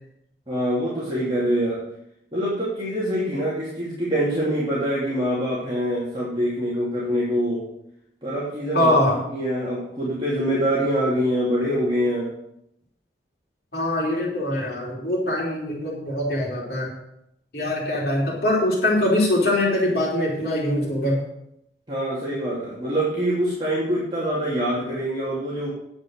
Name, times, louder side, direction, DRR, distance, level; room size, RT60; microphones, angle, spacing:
voice 1, 0.5-1.8 2.3-7.6 8.2-9.0 9.3-12.3 21.9-25.7, equal, 25° right, -8 dB, 2.7 m, -24 dB
voice 2, 8.7-9.2 13.7-16.9 17.5-21.2, left 1 dB, 60° left, -3 dB, 3.4 m, -23 dB
9.7 x 8.0 x 6.5 m, 0.78 s
head